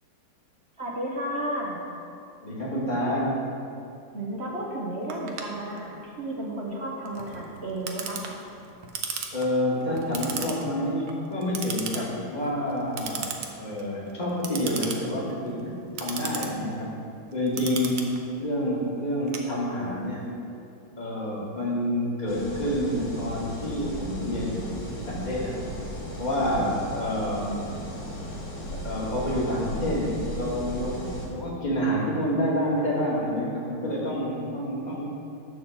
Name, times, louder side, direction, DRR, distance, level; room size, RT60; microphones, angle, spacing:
voice 1, 0.8-1.8 4.1-8.2 26.4-27.1, right 1 dB, 40° right, -2 dB, 1.1 m, -33 dB
voice 2, 2.4-3.3 9.3-13.3 13.6-16.9 17.3-18.1 18.4-20.3 21.0-24.6 25.0-25.6 26.2-27.6 28.7-35.1, equal, 20° left, -6 dB, 1.8 m, -28 dB
Clock, 5.1-20.0, right 6 dB, 70° right, 1.4 m, -37 dB
sound 1, 22.3-31.3, equal, 55° left, 3.0 m, -36 dB
11.0 x 4.4 x 7.0 m, 2.6 s
omnidirectional pair, 2.2 m